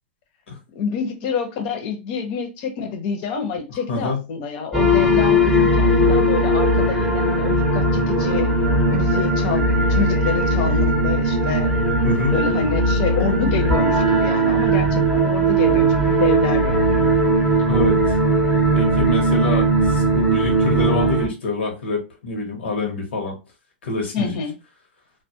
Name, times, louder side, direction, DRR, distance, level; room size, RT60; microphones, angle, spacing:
voice 1, 0.7-8.5 8.9-11.7 12.3-17.1 24.1-24.5, left 5 dB, 50° left, 6 dB, 0.7 m, -27 dB
voice 2, 3.9-4.2 12.0-12.4 17.7-18.0 18.7-23.4 23.8-24.4, left 3 dB, 85° left, 1 dB, 0.9 m, -25 dB
sound 1, 4.7-21.3, right 1 dB, ahead, 0.7 m, -18 dB
2.2 x 2.1 x 2.7 m, 0.28 s
hypercardioid pair, 135°, 6 cm